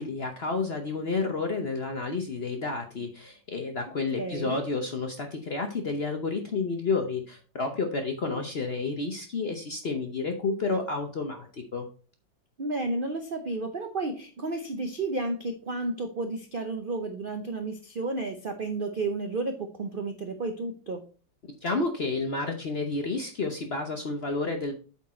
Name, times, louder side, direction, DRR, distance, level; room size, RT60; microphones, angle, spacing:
voice 1, 0.0-11.9 21.6-24.7, left 3 dB, 50° left, 4 dB, 0.7 m, -30 dB
voice 2, 4.2-4.6 8.2-8.4 12.6-21.0, right 2 dB, 65° right, 6 dB, 0.5 m, -32 dB
8.3 x 4.5 x 4.2 m, 0.38 s
omnidirectional pair, 2.0 m